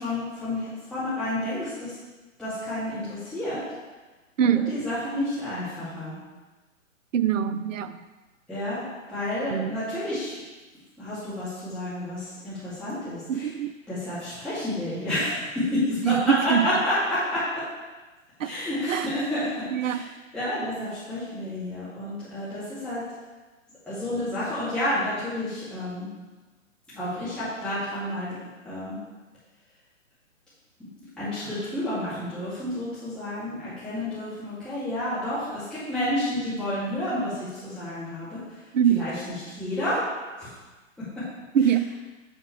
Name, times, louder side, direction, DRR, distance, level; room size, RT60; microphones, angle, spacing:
voice 1, 0.0-1.9 2.4-3.6 4.4-6.1 8.5-8.8 9.1-10.4 11.0-13.5 13.9-17.6 18.4-23.0 23.9-26.1 26.9-28.3 28.6-29.0 31.2-38.6 38.9-40.0 40.4-40.5 41.1-41.2, left 1 dB, ahead, -14 dB, 2.6 m, -30 dB
voice 2, 4.4-4.7 7.1-7.9 9.5-9.7 13.3-13.7 16.0-16.7 18.4-18.5 18.9-19.1 19.7-20.0 38.7-39.1 41.5-41.9, right 9 dB, 65° right, 11 dB, 0.6 m, -23 dB
7.2 x 7.0 x 3.4 m, 1.2 s
figure-of-eight pair, 125°, 41 cm